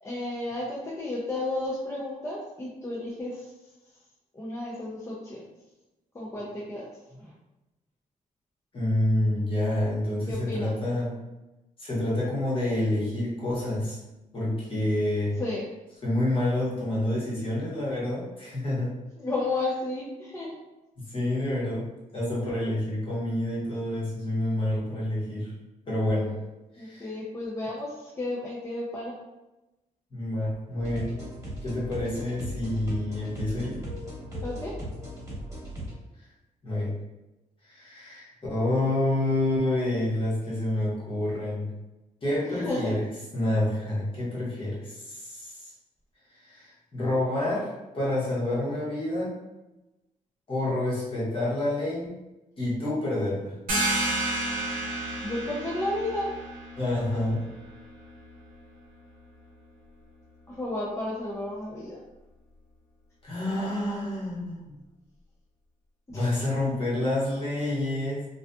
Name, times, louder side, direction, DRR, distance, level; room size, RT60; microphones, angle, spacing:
voice 1, 0.0-3.5 4.3-5.4 6.1-6.9 7.1-7.3 10.3-10.7 15.4-15.6 19.2-20.6 26.8-29.1 34.4-34.7 42.3-42.9 55.2-56.3 60.5-62.0 66.1-66.4, left 2 dB, 20° left, -6 dB, 0.4 m, -32 dB
voice 2, 8.7-11.2 11.8-14.0 14.3-15.4 16.0-19.0 21.0-25.5 25.9-26.4 26.7-27.1 30.1-31.1 31.6-33.8 36.6-36.9 37.6-41.7 42.2-43.1 43.3-45.7 46.3-49.3 50.5-52.1 52.6-53.6 56.8-57.4 63.2-64.8 66.1-68.3, left 1 dB, 35° left, -7 dB, 1.0 m, -28 dB
sound 1, 30.8-35.9, equal, 20° right, 1.1 m, -38 dB
sound 2, 53.7-59.1, right 2 dB, 65° right, 0.7 m, -32 dB
2.6 x 2.4 x 2.2 m, 1.0 s
wide cardioid pair, 140°, 15 cm